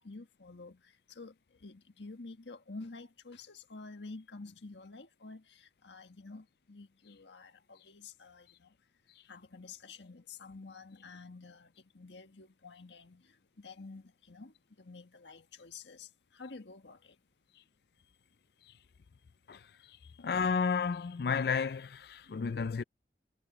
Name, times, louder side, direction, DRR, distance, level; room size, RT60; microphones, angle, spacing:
voice 1, 0.0-8.7 9.3-17.2 22.2-22.4, left 3 dB, 90° left, 1.6 m, -50 dB
voice 2, 20.2-22.8, left 5 dB, 60° left, 0.4 m, -32 dB
head